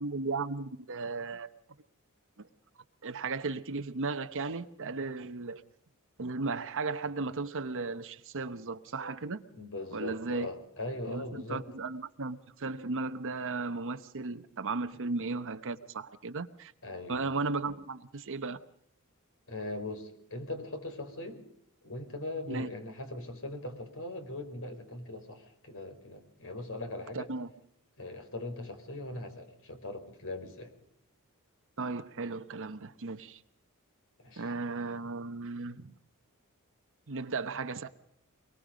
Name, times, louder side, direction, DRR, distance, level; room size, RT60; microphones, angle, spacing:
voice 1, 0.0-1.5 2.4-2.5 3.0-5.6 6.2-9.4 9.9-10.5 11.1-16.7 17.1-18.6 22.5-22.7 27.1-27.5 31.8-33.4 34.4-35.9 37.1-37.9, right 3 dB, 60° right, 9 dB, 1.0 m, -35 dB
voice 2, 9.5-11.6 14.9-15.0 16.8-17.3 19.5-21.4 21.8-27.3 28.0-30.7 34.2-34.5, left 2 dB, 65° left, 7 dB, 4.8 m, -40 dB
23.5 x 22.0 x 5.1 m, 0.70 s
head